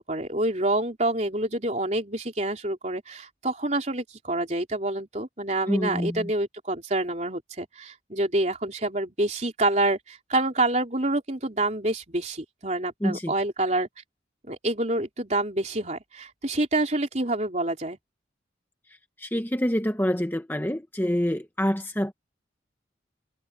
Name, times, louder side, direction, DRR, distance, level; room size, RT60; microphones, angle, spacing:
voice 1, 0.0-13.9 14.4-18.0, right 2 dB, 35° right, 3.8 m, -27 dB
voice 2, 5.7-6.3 13.0-13.3 19.2-22.2, equal, 10° left, 0.9 m, -26 dB
head